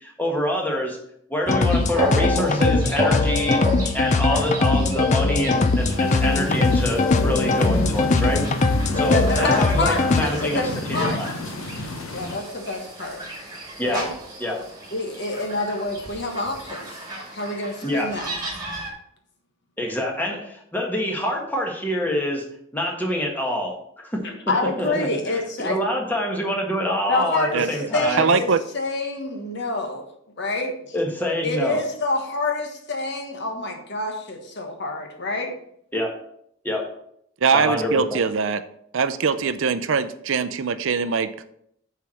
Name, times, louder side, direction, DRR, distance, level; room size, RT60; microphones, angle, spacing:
voice 1, 0.0-1.0 1.3-3.6 3.9-8.4 8.9-11.3 13.8-14.1 14.4-14.6 17.8-18.1 19.8-20.4 20.7-22.4 22.7-24.2 24.8-25.1 25.6-28.2 30.9-31.8 35.9-36.1 36.6-36.9 37.5-38.2, left 1 dB, 10° left, 0 dB, 1.4 m, -26 dB
sound 1, 1.5-10.2, left 3 dB, 35° left, 0.5 m, -21 dB
sound 2, 1.6-18.9, right 1 dB, 20° right, 2.1 m, -33 dB
sound 3, 5.5-12.4, left 2 dB, 80° left, 0.9 m, -32 dB
voice 2, 9.0-11.2 12.1-13.2 13.8-14.1 14.9-17.0 17.3-18.3 24.2-25.8 27.1-30.0 30.4-31.0 31.4-35.5, left 2 dB, 55° left, 3 dB, 1.4 m, -27 dB
voice 3, 27.5-28.6 37.4-38.6 38.9-41.4, right 5 dB, 65° right, 12 dB, 0.5 m, -22 dB
6.9 x 4.6 x 6.4 m, 0.71 s
head